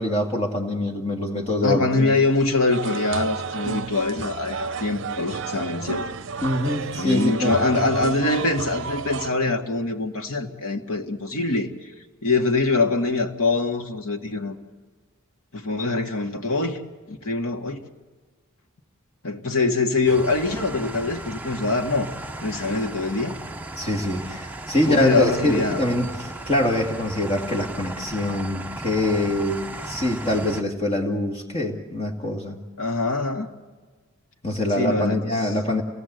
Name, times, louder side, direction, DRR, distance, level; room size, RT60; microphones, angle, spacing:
voice 1, 0.0-2.1 6.4-7.8 23.8-32.6 34.4-35.8, left 1 dB, 30° left, 2 dB, 2.2 m, -24 dB
voice 2, 1.6-6.1 7.0-11.7 12.2-14.6 15.5-16.8 17.1-17.8 19.2-22.1 22.4-23.3 24.9-25.8 32.8-33.5 34.8-35.3, left 3 dB, 90° left, 3 dB, 2.0 m, -24 dB
sound 1, 2.7-9.3, right 5 dB, 60° right, 0.7 m, -31 dB
sound 2, 20.1-30.6, right 2 dB, 10° right, 0.7 m, -36 dB
28.0 x 18.5 x 8.1 m, 1.4 s
head